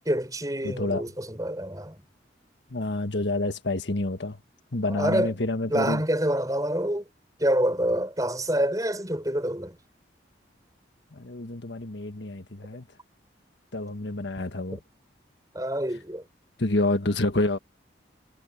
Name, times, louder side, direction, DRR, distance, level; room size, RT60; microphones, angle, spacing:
voice 1, 0.1-2.0 4.8-5.3 5.7-7.0 7.4-9.8 15.5-16.2, right 1 dB, 20° right, 5.6 m, -27 dB
voice 2, 0.6-1.0 2.7-4.4 4.7-6.0 11.1-12.8 13.7-14.8 16.6-17.6, left 2 dB, 75° left, 1.6 m, -28 dB
head